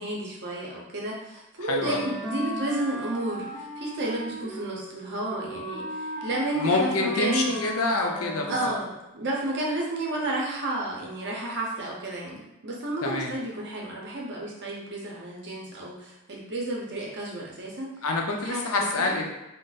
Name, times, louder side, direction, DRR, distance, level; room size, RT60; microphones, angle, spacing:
voice 1, 0.0-7.6 8.5-18.0 18.3-18.6 19.0-19.2, right 1 dB, 50° right, -3 dB, 0.7 m, -31 dB
voice 2, 1.6-2.0 6.5-8.6 13.0-13.3 18.0-19.3, left 3 dB, 65° left, 1 dB, 0.5 m, -26 dB
Wind instrument woodwind instrument, 1.8-8.9, equal, 5° right, 0.7 m, -37 dB
2.5 x 2.1 x 3.9 m, 0.97 s
head